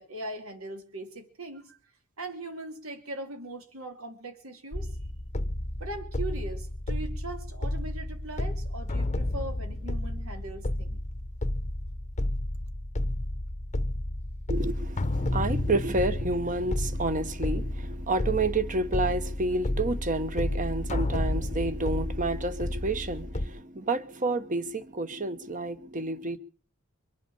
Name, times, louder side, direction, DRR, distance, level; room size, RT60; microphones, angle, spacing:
voice 1, 0.0-1.8 2.2-4.9 5.8-11.0, right 2 dB, 80° right, 2.8 m, -40 dB
sound 1, 4.7-23.5, left 1 dB, 35° left, 0.9 m, -31 dB
voice 2, 14.5-26.4, right 2 dB, 40° right, 1.2 m, -30 dB
24.0 x 8.3 x 7.0 m
head